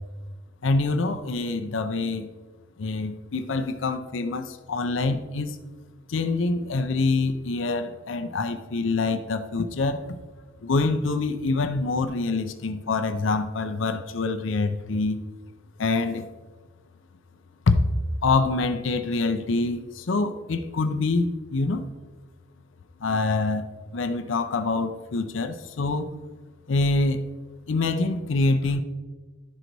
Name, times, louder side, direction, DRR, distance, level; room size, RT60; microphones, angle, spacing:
voice 1, 0.6-2.3 2.8-5.6 6.1-10.0 10.6-15.2 15.8-16.3 17.7-17.8 18.2-21.8 23.0-23.6 23.9-26.1 26.7-27.2 27.7-28.8, left 3 dB, 80° left, 8 dB, 0.5 m, -25 dB
11.5 x 4.0 x 4.6 m, 1.3 s
head